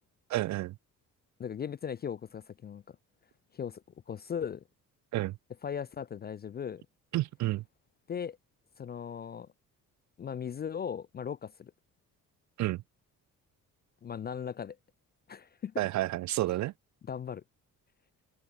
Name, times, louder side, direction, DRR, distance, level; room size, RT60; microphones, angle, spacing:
voice 1, 0.3-0.7 5.1-5.3 7.1-7.6 12.6-12.8 15.8-16.7, right 16 dB, 40° right, 0.5 m, -30 dB
voice 2, 1.4-3.0 3.5-3.8 4.1-4.6 5.6-6.8 8.1-8.4 8.8-9.5 10.2-11.7 14.0-14.8 15.3-15.7 17.1-17.4, left 7 dB, 20° left, 0.4 m, -38 dB
figure-of-eight pair, 40°, 46 cm